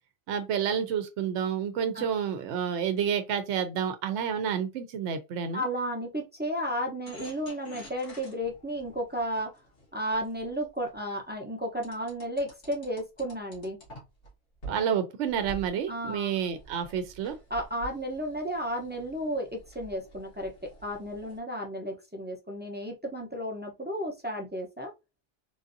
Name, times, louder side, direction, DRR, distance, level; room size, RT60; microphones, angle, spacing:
voice 1, 0.3-5.6 14.6-17.4, right 8 dB, 75° right, 0.9 m, -29 dB
voice 2, 5.5-9.5 9.9-13.8 15.9-16.3 17.5-20.5 20.8-24.9, equal, 10° right, 0.5 m, -33 dB
sound 1, 7.0-10.9 11.8-14.3 14.6-14.8 15.3-21.4, right 2 dB, 85° left, 1.9 m, -48 dB
3.7 x 2.6 x 2.6 m
omnidirectional pair, 1.2 m